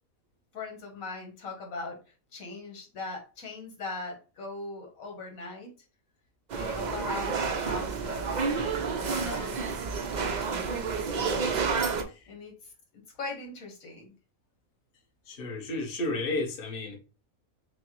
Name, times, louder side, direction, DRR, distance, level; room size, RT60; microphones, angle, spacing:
voice 1, 0.5-2.0 2.3-5.7 6.5-9.8 10.2-11.5 12.3-14.1, left 3 dB, 90° left, 1.7 m, -40 dB
sound 1, 6.5-12.0, right 5 dB, 65° right, 0.4 m, -30 dB
voice 2, 15.3-17.0, left 2 dB, 45° left, 1.0 m, -32 dB
6.3 x 2.1 x 3.0 m
omnidirectional pair, 1.4 m